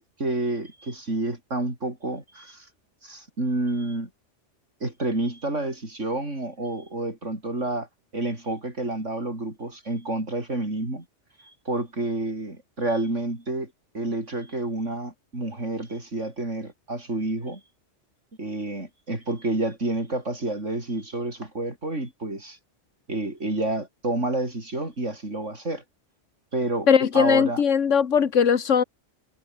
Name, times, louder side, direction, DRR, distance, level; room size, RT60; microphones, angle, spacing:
voice 1, 0.0-2.7 3.0-4.1 4.8-7.9 8.1-11.0 11.4-17.6 18.4-22.6 23.1-25.8 26.5-26.9 27.1-27.6, right 2 dB, 80° right, 6.3 m, -29 dB
voice 2, 26.9-28.8, left 7 dB, 80° left, 1.6 m, -19 dB
omnidirectional pair, 1.2 m